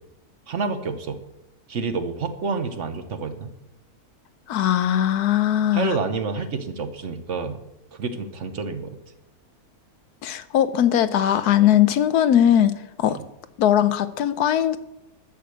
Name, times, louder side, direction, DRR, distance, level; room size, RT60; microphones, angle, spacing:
voice 1, 0.5-1.2 1.7-3.5 5.7-7.6 8.0-9.0 13.1-13.2, right 4 dB, 55° right, 9 dB, 1.2 m, -28 dB
voice 2, 4.5-6.0 10.2-12.7 13.0-13.2 13.6-14.8, left 10 dB, 90° left, 13 dB, 1.3 m, -19 dB
11.0 x 6.7 x 7.8 m, 0.91 s
omnidirectional pair, 1.6 m